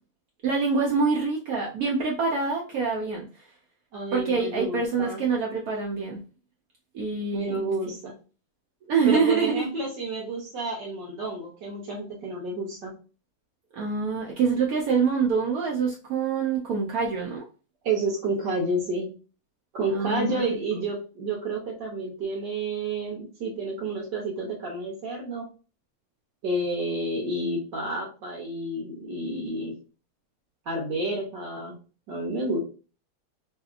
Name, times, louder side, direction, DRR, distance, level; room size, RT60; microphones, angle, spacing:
voice 1, 0.4-3.5 4.1-6.2 6.9-7.7 8.9-9.7 13.7-17.4 19.9-20.6, right 5 dB, 80° right, -1 dB, 0.8 m, -25 dB
voice 2, 3.9-5.2 7.3-8.1 9.1-12.9 17.8-19.1 19.7-25.5 26.4-29.7 30.7-31.8 32.1-32.6, right 2 dB, 65° right, -2 dB, 1.3 m, -30 dB
3.2 x 2.8 x 2.4 m, 0.35 s
omnidirectional pair, 2.2 m